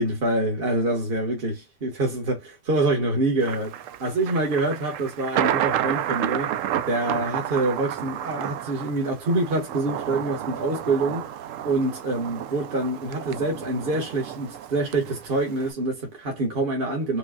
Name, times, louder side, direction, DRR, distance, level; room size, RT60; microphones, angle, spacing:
voice 1, 0.0-6.6 6.9-11.3 11.6-17.2, right 2 dB, 50° right, 1.6 m, -26 dB
Thunder, 3.4-15.7, right 11 dB, 85° right, 1.0 m, -31 dB
5.2 x 2.3 x 2.4 m
omnidirectional pair, 1.3 m